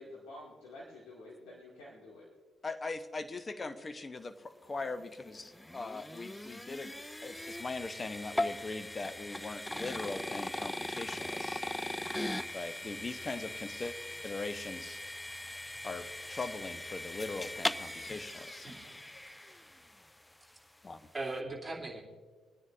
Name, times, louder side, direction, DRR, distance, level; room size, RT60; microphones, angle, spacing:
voice 1, 0.0-2.3, left 1 dB, 70° left, -4 dB, 2.3 m, -49 dB
voice 2, 2.6-6.9 7.2-11.6 12.5-13.9 14.2-15.0 15.8-18.6 20.8-21.0, left 3 dB, 30° left, 10 dB, 0.9 m, -40 dB
sound 1, 4.9-20.1, left 1 dB, 10° left, 0.4 m, -40 dB
voice 3, 18.6-19.0 21.1-22.0, right 2 dB, 15° right, -4 dB, 2.8 m, -39 dB
25.0 x 9.6 x 2.6 m, 1.4 s
figure-of-eight pair, 45°, 0 cm